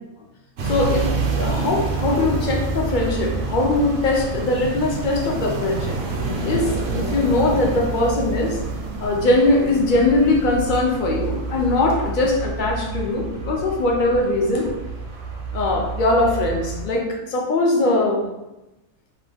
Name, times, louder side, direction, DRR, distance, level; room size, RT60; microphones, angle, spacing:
voice 1, 0.6-6.0 6.4-8.6 9.0-14.7 15.5-18.3, left 2 dB, 65° left, 0 dB, 0.5 m, -21 dB
sound 1, 0.6-16.9, right 3 dB, 65° right, 0.8 m, -28 dB
2.8 x 2.2 x 3.3 m, 0.99 s
omnidirectional pair, 1.3 m